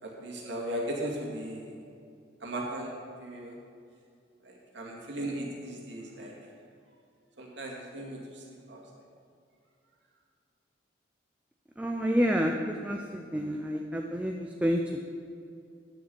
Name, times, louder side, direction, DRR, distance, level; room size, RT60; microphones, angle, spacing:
voice 1, 0.0-1.8 2.4-3.6 4.4-6.3 7.4-8.8, right 1 dB, 70° right, -2 dB, 2.4 m, -37 dB
voice 2, 11.8-15.0, equal, 5° right, 1 dB, 0.5 m, -29 dB
9.9 x 6.5 x 7.9 m, 2.4 s
head